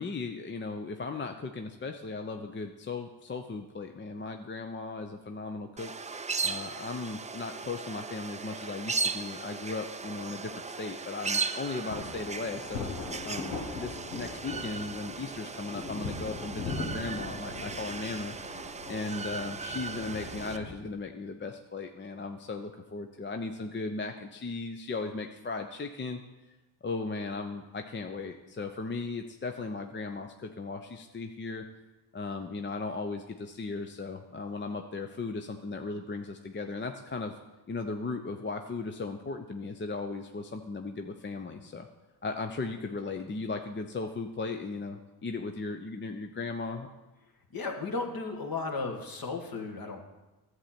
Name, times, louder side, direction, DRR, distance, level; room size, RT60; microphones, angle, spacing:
voice 1, 0.0-5.9 6.4-12.9 13.2-18.4 18.9-26.2 26.8-31.6 32.1-37.3 37.7-41.9 42.2-46.9, left 3 dB, 25° left, 5 dB, 0.7 m, -37 dB
sound 1, 5.8-20.6, right 4 dB, 15° right, 0.4 m, -37 dB
sound 2, 11.9-20.8, left 3 dB, 80° left, 1.6 m, -40 dB
voice 2, 47.5-50.0, left 3 dB, 45° left, 4 dB, 1.7 m, -34 dB
11.0 x 7.8 x 4.3 m, 1.1 s
supercardioid pair, 60°, 48 cm